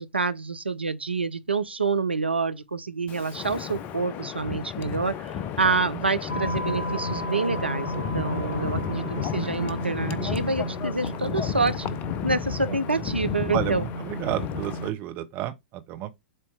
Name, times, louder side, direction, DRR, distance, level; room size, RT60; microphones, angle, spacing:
voice 1, 0.0-11.9 12.2-13.9, right 3 dB, 80° right, 0.8 m, -27 dB
Wind, 3.1-14.9, left 8 dB, 30° left, 0.6 m, -33 dB
sound 1, 6.3-14.9, right 1 dB, 80° left, 1.4 m, -34 dB
voice 2, 8.9-9.6 12.7-12.8 13.5-16.1, right 13 dB, 30° right, 1.2 m, -32 dB
7.8 x 3.0 x 4.7 m
figure-of-eight pair, 105°, 6 cm